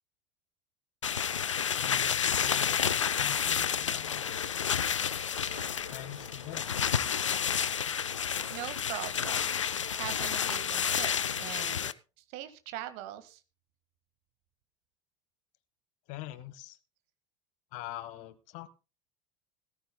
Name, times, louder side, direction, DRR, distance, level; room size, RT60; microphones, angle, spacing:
sound 1, 1.0-11.9, left 8 dB, 80° left, 0.5 m, -30 dB
voice 1, 1.8-4.6 5.9-6.7 16.1-16.8 17.7-18.7, left 14 dB, 55° left, 14 dB, 1.4 m, -44 dB
sound 2, 5.4-10.1, right 6 dB, 35° right, 4.3 m, -58 dB
voice 2, 8.5-9.6 9.9-11.9 12.2-13.4, right 13 dB, 55° right, 12 dB, 1.7 m, -41 dB
17.5 x 14.5 x 2.2 m, 0.31 s
figure-of-eight pair, 70°, 16 cm